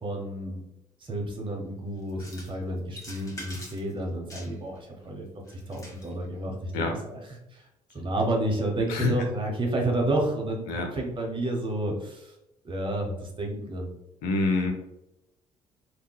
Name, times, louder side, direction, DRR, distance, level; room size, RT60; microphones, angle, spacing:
voice 1, 0.0-0.6 1.0-5.3 5.7-7.2 7.5-7.6 7.9-12.3 12.6-13.9, right 1 dB, 30° right, 0 dB, 0.9 m, -30 dB
sound 1, 2.1-2.6 2.9-3.9 4.3-4.8 5.5-6.1, left 1 dB, 20° left, 1.0 m, -44 dB
voice 2, 14.2-14.7, left 2 dB, 70° left, 3 dB, 0.6 m, -26 dB
3.6 x 2.2 x 2.2 m, 0.89 s
hypercardioid pair, 50°, 17 cm